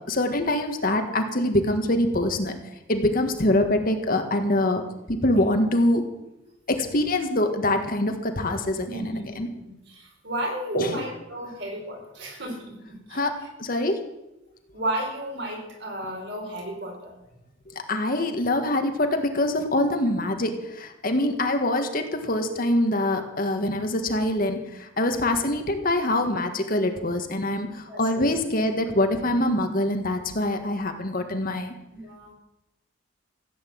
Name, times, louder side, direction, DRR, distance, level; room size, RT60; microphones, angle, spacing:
voice 1, 0.1-2.6 2.9-4.8 5.1-6.0 6.7-9.5 10.7-11.1 13.1-14.0 17.7-31.7, left 1 dB, 45° left, 6 dB, 1.7 m, -24 dB
voice 2, 8.8-13.5 14.7-17.2 27.9-28.3 31.9-32.3, right 1 dB, 60° right, 1 dB, 5.0 m, -33 dB
15.5 x 9.5 x 7.7 m, 0.92 s
head